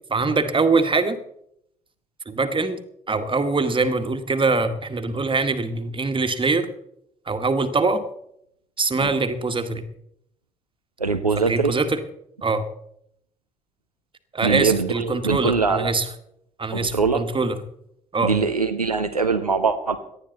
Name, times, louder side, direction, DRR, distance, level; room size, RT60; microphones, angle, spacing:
voice 1, 0.1-1.2 2.3-2.8 3.1-6.7 7.3-8.0 8.8-9.8 11.4-12.0 12.4-12.7 14.3-16.0 16.6-17.5 18.1-18.3, right 3 dB, 25° right, 8 dB, 1.7 m, -23 dB
voice 2, 11.0-11.8 14.4-15.9 16.7-17.2 18.2-20.0, right 5 dB, 90° right, 7 dB, 0.6 m, -22 dB
18.0 x 12.5 x 4.1 m, 0.74 s
figure-of-eight pair, 45°, 19 cm